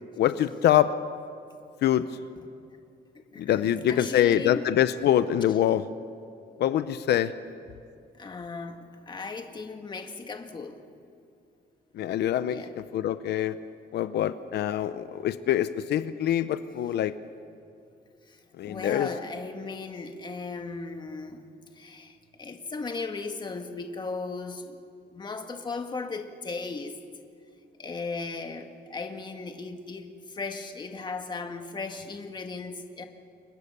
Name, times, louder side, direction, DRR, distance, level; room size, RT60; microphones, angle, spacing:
voice 1, 0.2-1.0 1.8-2.1 3.4-5.9 6.6-7.3 11.9-13.6 13.9-17.1 18.6-19.1, left 11 dB, 80° left, 12 dB, 0.8 m, -24 dB
voice 2, 3.3-4.7 8.2-10.8 12.5-12.7 18.3-21.5 21.8-24.9 25.1-27.0 27.8-33.0, left 4 dB, 25° left, 5 dB, 1.8 m, -37 dB
29.5 x 23.5 x 6.8 m, 2.6 s
cardioid pair, 145°, 17 cm